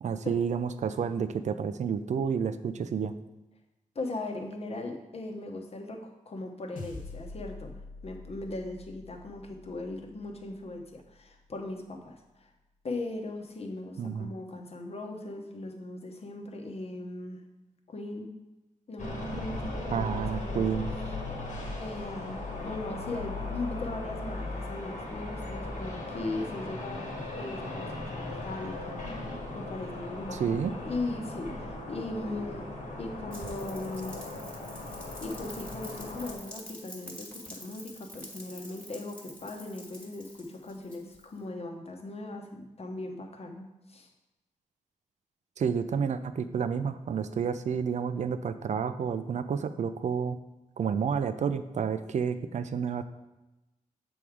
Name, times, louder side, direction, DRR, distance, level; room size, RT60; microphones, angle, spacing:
voice 1, 0.0-3.1 14.0-14.3 19.9-20.9 30.4-30.7 45.6-50.4 50.8-53.0, right 7 dB, 60° right, 11 dB, 0.4 m, -30 dB
voice 2, 3.9-7.7 8.0-12.5 12.8-17.4 17.9-18.3 18.9-20.7 21.8-27.0 27.4-29.0 29.5-32.6 33.0-34.2 35.2-44.1, left 2 dB, 45° left, 3 dB, 1.0 m, -38 dB
sound 1, 6.8-11.3, left 3 dB, 85° left, 0.8 m, -46 dB
sound 2, 19.0-36.4, left 2 dB, 65° left, 1.4 m, -38 dB
Rain, 33.3-41.4, equal, 10° left, 1.5 m, -47 dB
7.0 x 3.6 x 4.7 m, 1.0 s
cardioid pair, 85°, 14 cm